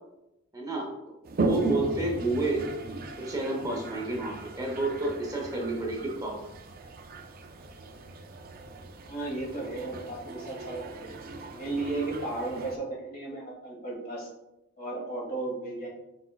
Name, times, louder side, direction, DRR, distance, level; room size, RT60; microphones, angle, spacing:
voice 1, 0.5-0.9 1.4-2.6 3.2-6.5, right 2 dB, 20° right, -1 dB, 0.7 m, -30 dB
Toilet flush, 1.3-12.8, right 2 dB, 50° right, 0.4 m, -36 dB
voice 2, 9.0-11.2 11.5-14.3 14.8-15.9, right 2 dB, 45° left, -4 dB, 1.5 m, -35 dB
4.3 x 4.2 x 2.3 m, 0.89 s
head